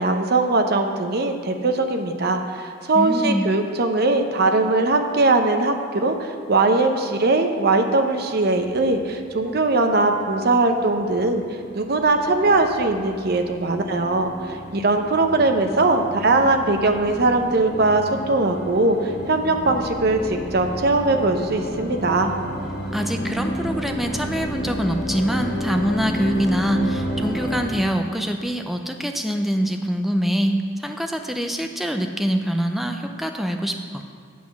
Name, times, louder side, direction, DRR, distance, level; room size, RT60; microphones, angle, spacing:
voice 1, 0.0-11.4 11.7-22.3, right 2 dB, 50° right, 5 dB, 0.7 m, -20 dB
voice 2, 2.9-3.5 22.9-34.0, equal, ahead, 4 dB, 0.4 m, -24 dB
sound 1, 8.2-27.7, equal, 55° left, 1.4 m, -32 dB
8.5 x 5.8 x 6.0 m, 2.1 s
head